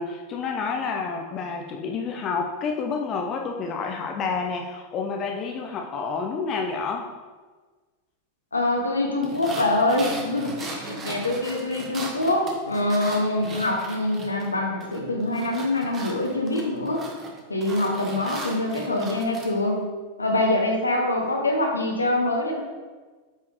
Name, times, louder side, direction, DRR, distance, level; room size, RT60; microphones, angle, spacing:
voice 1, 0.0-7.1, left 5 dB, 30° left, 2 dB, 0.7 m, -29 dB
voice 2, 8.5-17.0 17.5-19.8 20.2-22.6, left 2 dB, 80° left, 1 dB, 1.3 m, -24 dB
sound 1, 9.2-14.5 14.8-19.5, right 2 dB, 25° right, 1.3 m, -38 dB
8.8 x 5.4 x 3.1 m, 1.3 s
figure-of-eight pair, 90°, 0 cm